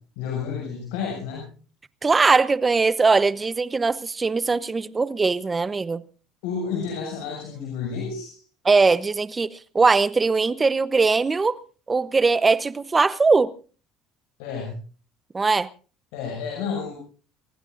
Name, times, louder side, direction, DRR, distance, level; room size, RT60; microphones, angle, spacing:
voice 1, 0.2-1.5 6.4-8.4 14.4-14.7 16.1-16.9, left 6 dB, 90° left, 6.6 m, -30 dB
voice 2, 2.0-6.0 8.6-11.6 11.9-13.5 15.3-15.7, right 4 dB, 20° right, 0.9 m, -20 dB
29.0 x 15.5 x 2.6 m
supercardioid pair, 105°, 0 cm